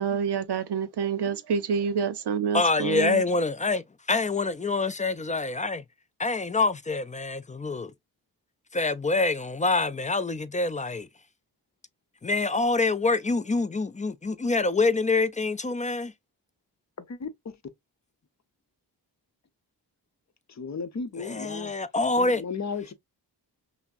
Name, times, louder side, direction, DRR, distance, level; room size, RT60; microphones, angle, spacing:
voice 1, 0.0-3.2, right 6 dB, 70° right, 0.6 m, -27 dB
voice 2, 2.5-5.8 6.2-7.9 8.7-11.1 12.2-16.1 21.2-22.4, left 3 dB, 20° left, 0.3 m, -26 dB
voice 3, 17.0-17.5 20.5-21.7 22.1-22.9, left 5 dB, 40° left, 0.7 m, -35 dB
5.6 x 2.0 x 2.5 m
wide cardioid pair, 95°, 42 cm